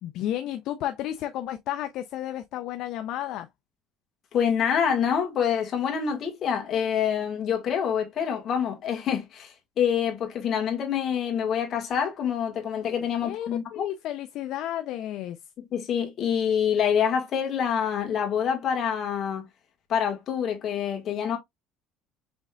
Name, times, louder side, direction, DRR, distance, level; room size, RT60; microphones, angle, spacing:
voice 1, 0.0-3.5 13.2-15.4, left 12 dB, 60° left, 0.5 m, -32 dB
voice 2, 4.3-13.9 15.7-19.5 19.9-21.4, left 8 dB, 45° left, 1.6 m, -26 dB
5.2 x 3.6 x 2.3 m
cardioid pair, 140°, 0 cm